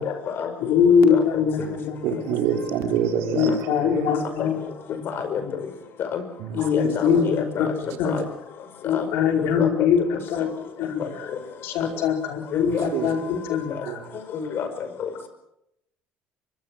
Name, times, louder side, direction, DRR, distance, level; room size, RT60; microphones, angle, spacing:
voice 1, 0.0-0.5 1.1-1.2 3.5-3.6 4.0-4.5 5.1-5.7 6.0-6.2 6.6-7.7 8.0-8.2 8.8-9.1 9.4-9.9 11.0-11.4 12.5-12.9 13.7-13.8 14.3-14.7 15.0-15.1, left 7 dB, 60° left, 5.1 m, -29 dB
voice 2, 0.6-2.0 3.3-5.0 5.4-5.5 6.5-7.7 8.0-8.2 8.8-10.5 10.8-11.3 11.6-14.0, left 7 dB, 75° left, 4.9 m, -22 dB
voice 3, 2.0-4.1 6.4-7.3 8.2-8.3 12.7-13.1 13.9-14.2, right 8 dB, 80° right, 3.7 m, -28 dB
23.5 x 23.0 x 6.3 m
supercardioid pair, 75°, 4 cm